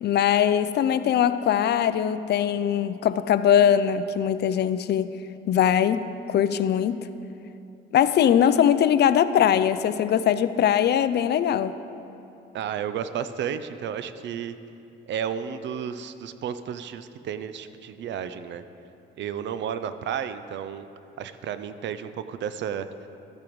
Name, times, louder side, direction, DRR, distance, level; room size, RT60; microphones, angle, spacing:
voice 1, 0.0-5.1 5.5-7.1 7.9-11.8, left 9 dB, 55° left, 13 dB, 0.4 m, -21 dB
voice 2, 12.5-14.5 15.1-18.6 19.2-20.9 21.2-23.1, right 8 dB, 65° right, 12 dB, 0.5 m, -32 dB
13.0 x 8.5 x 3.1 m, 2.8 s
cardioid pair, 90°, 20 cm